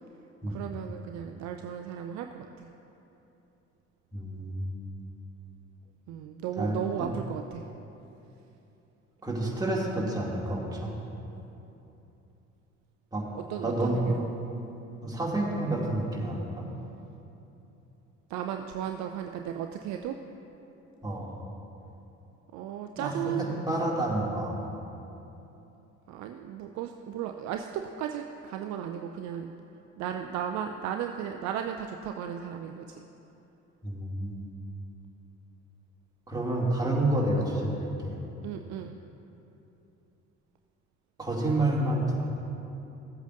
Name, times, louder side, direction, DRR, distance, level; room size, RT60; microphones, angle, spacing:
voice 1, 0.5-2.7 6.1-7.7 13.3-14.3 18.3-20.2 22.5-23.5 26.1-29.5 30.0-33.0 38.4-39.0, right 9 dB, 50° right, 5 dB, 0.5 m, -35 dB
voice 2, 4.1-4.7 6.6-7.1 9.2-10.9 13.1-13.2 13.6-14.1 15.0-16.7 21.0-21.4 23.0-23.1 23.4-24.5 33.8-34.5 36.3-38.2 41.2-42.2, right 1 dB, 10° right, -5 dB, 2.3 m, -29 dB
15.0 x 8.1 x 2.6 m, 2.9 s
figure-of-eight pair, 55°, 36 cm